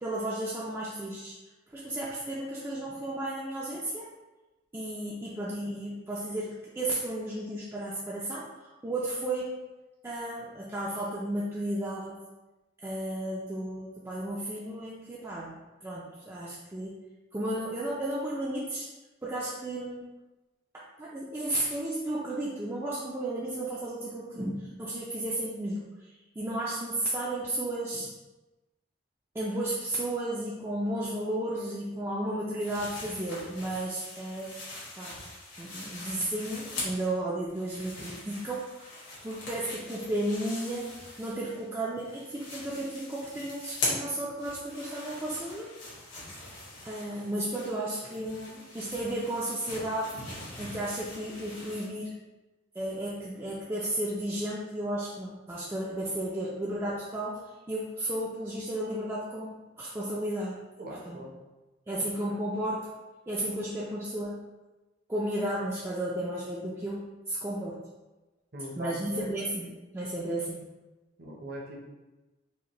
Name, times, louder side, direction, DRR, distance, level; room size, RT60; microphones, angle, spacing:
voice 1, 0.0-1.4 1.7-4.1 4.7-9.5 10.0-12.2 12.8-17.0 17.3-18.9 19.2-20.1 20.7-28.1 29.3-34.5 35.0-35.2 35.6-38.9 39.2-40.9 41.2-45.7 46.8-50.1 50.5-52.1 52.8-60.6 61.0-61.2 61.9-62.9 63.3-64.4 65.1-67.8 68.8-69.7 69.9-70.6, right 1 dB, 15° right, -6 dB, 0.3 m, -33 dB
sound 1, 32.6-37.2 37.5-41.7 42.0-51.9, left 2 dB, 70° left, 1.4 m, -41 dB
voice 2, 60.8-61.3 68.5-69.3 71.2-71.9, equal, 50° right, -1 dB, 0.7 m, -40 dB
4.9 x 2.1 x 2.9 m, 1.1 s
head